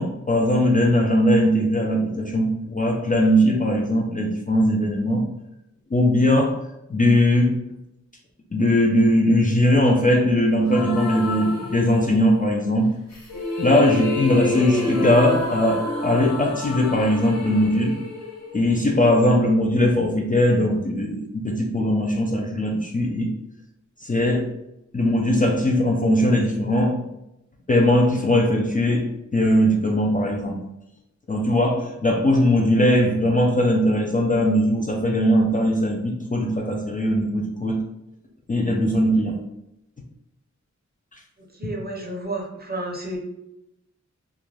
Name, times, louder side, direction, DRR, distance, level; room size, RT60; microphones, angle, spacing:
voice 1, 0.0-5.2 5.9-6.6 6.9-7.6 8.5-12.9 13.6-18.0 18.5-23.3 24.0-24.5 24.9-27.0 27.7-30.6 31.3-37.8 38.5-39.4 41.6-41.7, left 1 dB, 30° left, 0 dB, 0.4 m, -20 dB
sound 1, 10.7-12.4 13.1-19.2, left 2 dB, 65° left, 0.7 m, -29 dB
voice 2, 41.6-43.2, right 2 dB, 35° right, -1 dB, 0.6 m, -31 dB
2.4 x 2.1 x 3.1 m, 0.87 s
wide cardioid pair, 60°, 29 cm